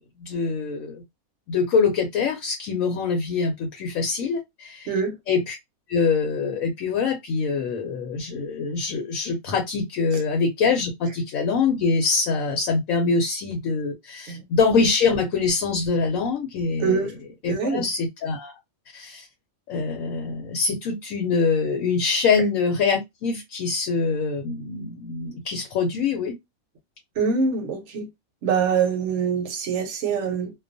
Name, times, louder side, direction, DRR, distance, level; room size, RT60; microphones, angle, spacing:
voice 1, 0.2-1.0 1.5-4.9 5.3-5.6 5.9-17.1 17.4-18.5 18.9-19.3 19.7-26.4, left 4 dB, 70° left, 1.0 m, -24 dB
voice 2, 16.8-17.1 17.5-17.9 27.2-28.1 28.4-30.5, right 5 dB, 60° right, 0.9 m, -24 dB
2.3 x 2.3 x 2.5 m
omnidirectional pair, 1.5 m